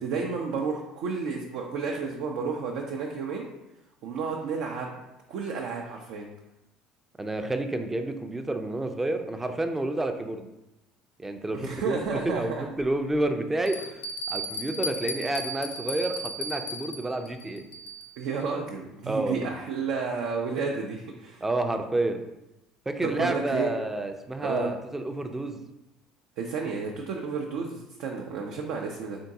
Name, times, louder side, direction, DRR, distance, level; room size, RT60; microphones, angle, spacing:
voice 1, 0.0-3.5 4.0-5.0 5.3-6.3 11.5-12.6 18.2-21.4 23.0-23.8 24.4-24.7 26.4-29.2, right 5 dB, 65° right, 0 dB, 0.5 m, -31 dB
voice 2, 7.2-10.5 11.2-13.8 14.3-17.6 19.1-19.5 21.4-22.2 22.9-25.6, right 2 dB, 15° right, 6 dB, 0.5 m, -29 dB
Bell, 12.1-12.2 12.8-12.9 13.7-18.2, equal, 60° left, 0.5 m, -35 dB
3.8 x 3.5 x 2.7 m, 0.92 s
hypercardioid pair, 65°, 2 cm